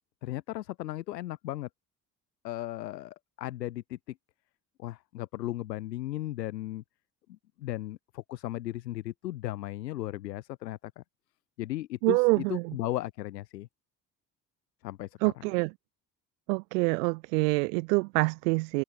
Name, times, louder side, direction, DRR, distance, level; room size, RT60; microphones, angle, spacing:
voice 1, 0.2-1.7 2.4-4.1 4.8-6.8 7.3-11.0 11.6-13.7 14.8-15.4, left 15 dB, 75° left, 3.3 m, -36 dB
voice 2, 12.0-12.7 15.2-15.7 16.5-18.8, right 28 dB, 70° right, 3.5 m, -26 dB
figure-of-eight pair, 50°, 49 cm